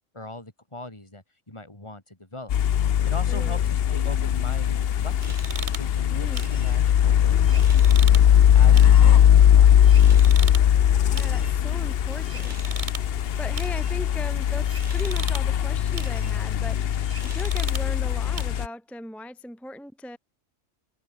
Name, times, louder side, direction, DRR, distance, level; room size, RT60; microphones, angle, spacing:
voice 1, 0.1-2.6 3.0-5.4 5.7-8.1 8.5-10.3, left 2 dB, 20° left, 3.8 m, -40 dB
sound 1, 2.5-18.7, left 10 dB, 55° left, 0.8 m, -19 dB
voice 2, 3.3-3.6 6.1-6.5 11.1-13.1 13.4-20.2, left 1 dB, ahead, 1.1 m, -39 dB
sound 2, 4.0-7.8, equal, 15° right, 6.4 m, -51 dB
sound 3, 5.2-18.4, right 4 dB, 35° right, 1.7 m, -40 dB
omnidirectional pair, 1.4 m